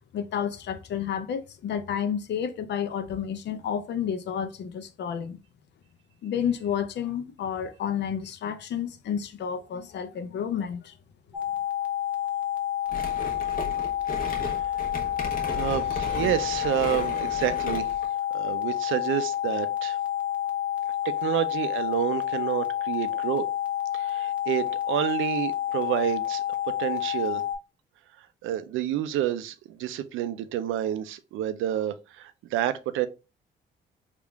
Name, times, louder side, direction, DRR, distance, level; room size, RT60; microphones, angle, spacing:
voice 1, 0.1-5.4 6.2-10.9, left 8 dB, 60° left, 0.6 m, -30 dB
sound 1, 11.3-27.5, left 11 dB, 5° right, 0.8 m, -29 dB
sound 2, 12.9-18.1, left 2 dB, 45° left, 1.1 m, -35 dB
voice 2, 15.5-18.0 18.3-20.0 21.0-23.4 23.9-26.4 26.8-27.4 28.4-33.1, right 12 dB, 85° right, 0.5 m, -29 dB
3.6 x 2.4 x 3.4 m
cardioid pair, 90°, 20 cm